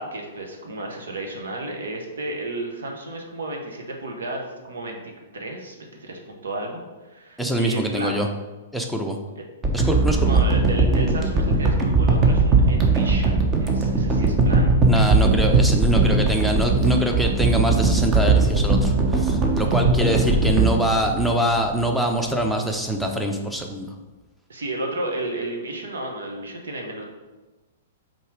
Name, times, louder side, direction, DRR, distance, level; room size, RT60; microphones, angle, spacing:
voice 1, 0.0-6.8 7.1-8.2 9.4-9.5 10.2-14.7 24.5-27.0, right 2 dB, 70° right, 2 dB, 1.1 m, -33 dB
voice 2, 7.4-8.3 8.7-9.2 9.7-10.4 14.8-23.9, right 1 dB, ahead, 2 dB, 0.7 m, -24 dB
sound 1, 9.6-21.9 22.4-22.5, right 3 dB, 20° right, 0.9 m, -19 dB
5.5 x 3.7 x 5.0 m, 1.2 s
figure-of-eight pair, 110°, 0 cm